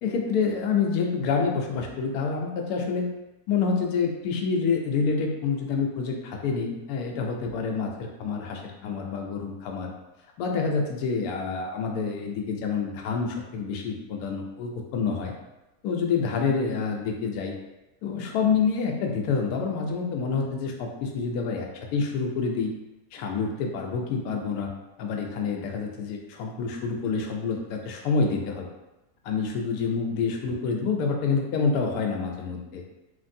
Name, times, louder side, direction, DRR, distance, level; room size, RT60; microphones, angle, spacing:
voice 1, 0.0-3.1 3.5-9.9 10.4-15.3 15.8-17.5 18.0-22.7 23.1-24.7 25.0-28.7 29.2-32.8, left 5 dB, 75° left, 1 dB, 1.0 m, -27 dB
3.3 x 2.5 x 2.6 m, 1.0 s
omnidirectional pair, 1.7 m